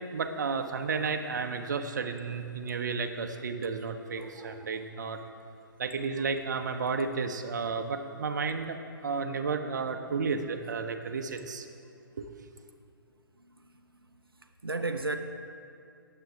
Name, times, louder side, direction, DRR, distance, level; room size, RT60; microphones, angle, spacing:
voice 1, 0.1-5.2 5.8-11.6 12.2-12.3, right 5 dB, 55° right, 6 dB, 0.8 m, -32 dB
voice 2, 4.1-4.7 6.2-6.3 8.6-8.7 14.6-15.2, right 3 dB, 80° right, 5 dB, 0.6 m, -34 dB
18.0 x 7.5 x 3.6 m, 2.5 s
figure-of-eight pair, 130°, 12 cm